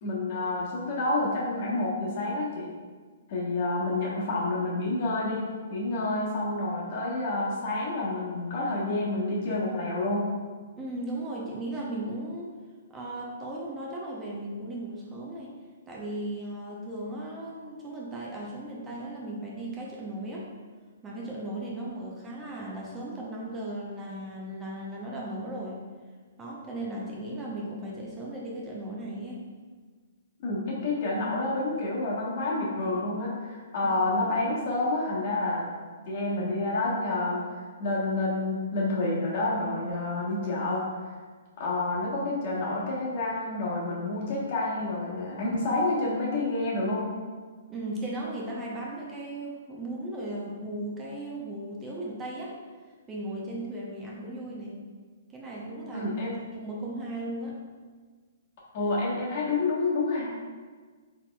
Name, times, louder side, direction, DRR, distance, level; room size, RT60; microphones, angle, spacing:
voice 1, 0.0-2.7 3.3-5.4 5.7-10.3 30.4-35.7 36.1-37.4 37.8-40.8 41.6-47.1 55.9-56.3 58.7-60.3, left 2 dB, 45° left, -5 dB, 1.2 m, -29 dB
voice 2, 10.8-12.5 12.9-15.5 15.9-20.5 21.0-25.8 26.4-29.4 33.8-33.9 47.7-52.5 53.1-54.8 55.3-56.1 56.5-57.6, right 1 dB, 20° right, -4 dB, 0.7 m, -36 dB
4.2 x 4.1 x 2.3 m, 1.5 s
figure-of-eight pair, 120°, 0 cm